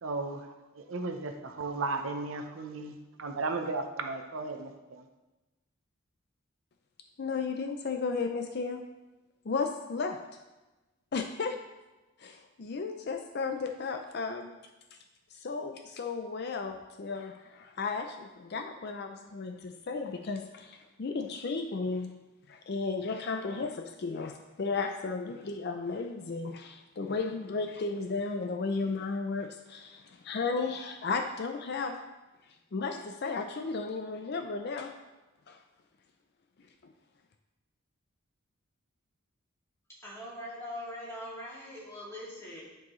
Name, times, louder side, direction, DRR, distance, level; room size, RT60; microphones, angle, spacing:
voice 1, 0.0-5.0, right 3 dB, 75° right, 5 dB, 0.7 m, -35 dB
voice 2, 7.2-8.8 9.5-10.2 11.1-11.6 12.2-14.5 14.9-15.0 15.3-22.1 22.5-32.0 32.7-34.9 35.5-35.6, left 4 dB, 50° left, 5 dB, 0.4 m, -34 dB
voice 3, 40.0-42.6, left 1 dB, 15° left, -9 dB, 2.4 m, -42 dB
11.0 x 4.6 x 3.1 m, 1.1 s
head